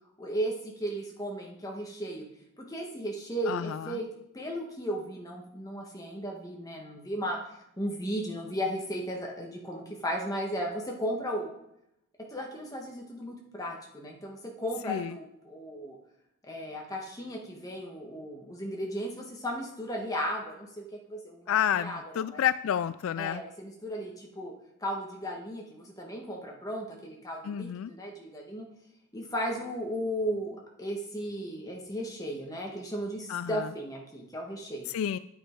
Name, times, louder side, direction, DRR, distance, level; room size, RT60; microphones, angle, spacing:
voice 1, 0.2-2.2 2.6-4.1 4.3-7.4 7.8-11.5 12.3-16.0 16.4-22.4 23.2-24.5 24.8-28.7 29.1-34.9, equal, 15° left, 0 dB, 1.5 m, -35 dB
voice 2, 3.5-4.0 14.9-15.1 21.5-23.4 27.4-27.9 33.3-33.7 34.9-35.2, left 9 dB, 70° left, 15 dB, 0.3 m, -30 dB
9.4 x 8.0 x 4.6 m, 0.78 s
head